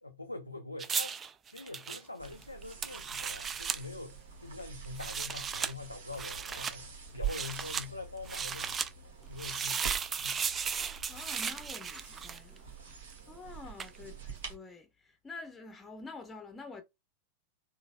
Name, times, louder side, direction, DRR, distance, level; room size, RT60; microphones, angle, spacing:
voice 1, 0.0-8.8 9.3-10.5 14.0-14.3, left 3 dB, 85° left, 0.3 m, -45 dB
sound 1, 0.8-3.8 4.8-5.7 6.1-6.8 7.2-7.9 8.3-8.9 9.4-12.6 13.8-14.0, right 6 dB, 20° right, 0.3 m, -35 dB
sound 2, 2.2-14.5, right 8 dB, 60° right, 1.2 m, -45 dB
voice 2, 10.8-16.8, left 3 dB, 15° left, 0.7 m, -48 dB
3.9 x 2.1 x 2.2 m
figure-of-eight pair, 90°, 0 cm